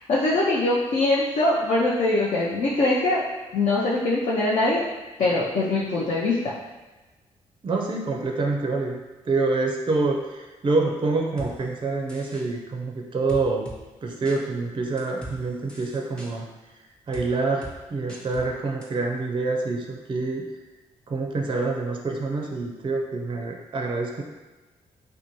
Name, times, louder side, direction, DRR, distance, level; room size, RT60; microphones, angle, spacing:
voice 1, 0.1-3.2 3.5-4.8 5.2-6.4, left 2 dB, 50° left, -6 dB, 0.5 m, -22 dB
voice 2, 7.6-9.0 9.3-13.7 14.0-16.5 17.1-20.4 21.1-24.2, right 3 dB, 30° right, 1 dB, 0.5 m, -26 dB
sound 1, 11.4-11.5 12.1-12.5 13.3-13.8 14.3-14.4 15.0-15.4 15.7-16.3 17.1-17.3 17.6-17.8 18.1-18.5 18.8-18.9, right 1 dB, 5° left, 0.8 m, -39 dB
2.5 x 2.2 x 2.9 m, 1.2 s
hypercardioid pair, 40°, 16 cm